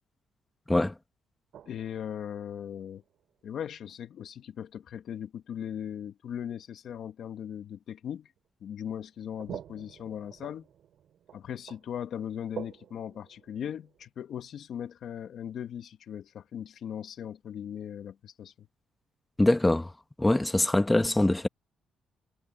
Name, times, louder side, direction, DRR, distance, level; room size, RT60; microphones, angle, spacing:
sound 1, 1.5-3.4 3.8-3.9 5.9-6.0 6.6-6.7 8.4-8.5 9.0-14.1, right 10 dB, 70° right, 7.5 m, -48 dB
voice 1, 1.7-3.0 3.4-8.3 8.6-10.7 11.3-18.7, left 9 dB, 65° left, 2.0 m, -38 dB
voice 2, 19.4-19.9 20.2-21.5, left 1 dB, 10° left, 1.6 m, -23 dB
cardioid pair, 90°, 0 cm